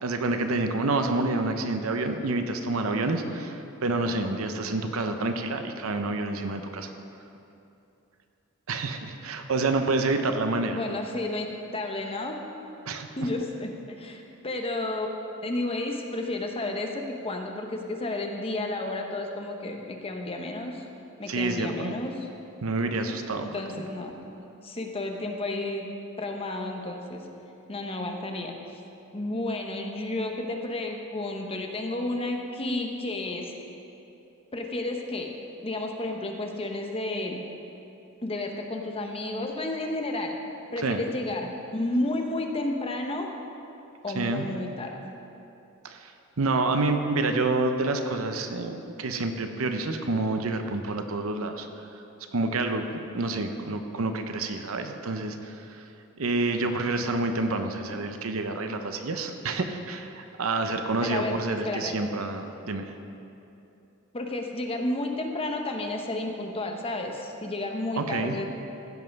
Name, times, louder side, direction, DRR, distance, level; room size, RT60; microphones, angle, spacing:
voice 1, 0.0-6.9 8.7-10.8 12.9-13.1 21.3-21.9 22.6-23.5 40.8-41.0 44.2-44.5 45.8-46.1 46.4-51.7 52.3-52.8 53.1-55.8 56.2-62.8 68.0-68.4, right 3 dB, 75° right, 6 dB, 0.7 m, -28 dB
voice 2, 10.7-11.5 11.7-12.4 13.2-15.1 15.4-20.8 21.2-22.1 23.4-25.9 26.2-27.2 27.7-28.8 29.1-33.5 34.5-35.3 35.6-37.4 38.2-40.3 40.7-43.3 44.0-45.0 61.0-62.0 64.1-68.5, left 2 dB, 30° left, 3 dB, 0.9 m, -32 dB
15.5 x 5.6 x 5.2 m, 2.8 s
head